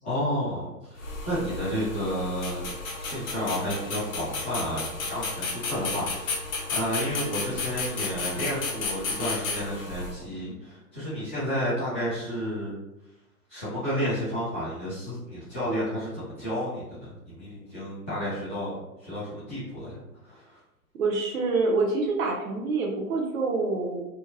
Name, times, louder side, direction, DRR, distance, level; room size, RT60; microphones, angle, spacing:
voice 1, 0.0-12.7 13.5-20.6, equal, 10° left, -14 dB, 0.4 m, -31 dB
sound 1, 1.0-10.1, left 3 dB, 60° left, 0.8 m, -33 dB
voice 2, 21.0-24.1, right 3 dB, 60° right, -1 dB, 0.7 m, -26 dB
2.8 x 2.1 x 2.5 m, 0.92 s
hypercardioid pair, 135°, 48 cm